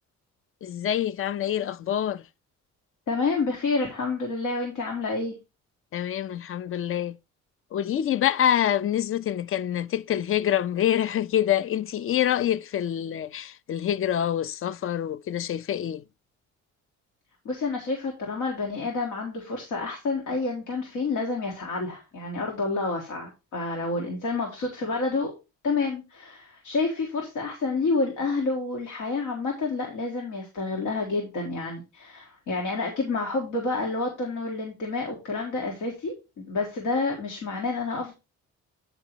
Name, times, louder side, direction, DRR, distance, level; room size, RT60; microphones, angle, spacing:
voice 1, 0.6-2.3 5.9-7.2 7.7-16.0, left 10 dB, 45° left, 0.5 m, -26 dB
voice 2, 3.1-5.4 17.5-25.3 25.6-38.1, left 3 dB, 85° left, 1.7 m, -29 dB
8.9 x 4.0 x 4.5 m
cardioid pair, 90°, 30 cm